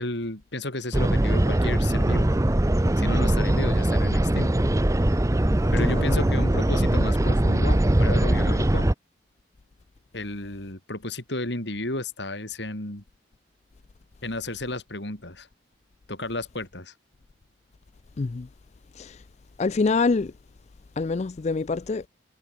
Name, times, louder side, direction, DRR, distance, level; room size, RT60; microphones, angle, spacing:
voice 1, 0.0-2.3 3.0-4.7 5.7-8.9 10.1-13.0 14.2-15.5 16.1-16.9, left 2 dB, 70° left, 5.2 m, -33 dB
sound 1, 0.9-8.9, right 1 dB, 15° right, 0.7 m, -21 dB
voice 2, 5.8-6.2 18.2-18.5 19.0-19.2 19.6-20.3 21.0-22.0, left 4 dB, 40° left, 0.4 m, -25 dB
head